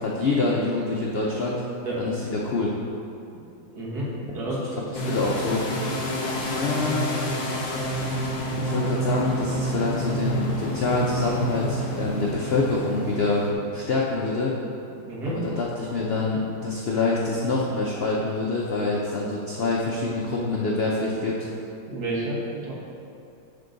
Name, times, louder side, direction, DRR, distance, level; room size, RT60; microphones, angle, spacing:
voice 1, 0.0-1.6 2.0-2.7 5.0-5.6 6.5-7.1 7.5-7.6 8.6-13.4 13.7-14.6 15.2-21.4, left 3 dB, 85° left, -3 dB, 0.5 m, -26 dB
voice 2, 3.7-4.1 4.3-4.7 15.1-15.4 21.9-22.7, right 1 dB, 60° right, -6 dB, 1.9 m, -30 dB
Fizzzy C drone, 4.9-13.5, equal, 65° left, 1.4 m, -28 dB
10.5 x 3.8 x 3.9 m, 2.7 s
omnidirectional pair, 1.9 m